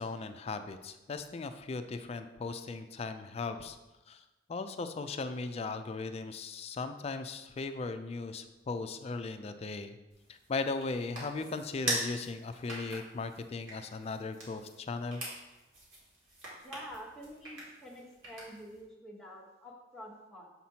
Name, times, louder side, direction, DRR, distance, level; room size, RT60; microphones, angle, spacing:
voice 1, 0.0-3.8 4.1-4.2 4.5-10.0 10.3-15.2, left 3 dB, 30° left, 9 dB, 0.3 m, -37 dB
sound 1, 10.1-18.8, right 1 dB, 90° right, 2.1 m, -42 dB
voice 2, 16.6-20.5, equal, ahead, -4 dB, 1.0 m, -48 dB
7.4 x 5.8 x 2.8 m, 1.1 s
head